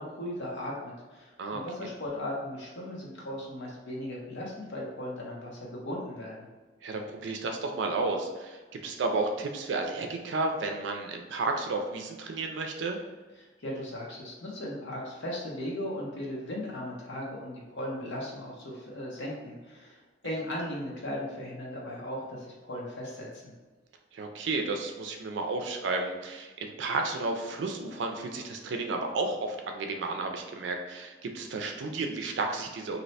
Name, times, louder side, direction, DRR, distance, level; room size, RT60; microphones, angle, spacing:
voice 1, 0.0-6.4 13.4-23.5, left 1 dB, 80° left, -3 dB, 0.8 m, -37 dB
voice 2, 1.4-1.9 6.8-13.0 24.1-33.0, right 3 dB, 80° right, 4 dB, 0.4 m, -32 dB
2.7 x 2.1 x 4.0 m, 1.3 s
head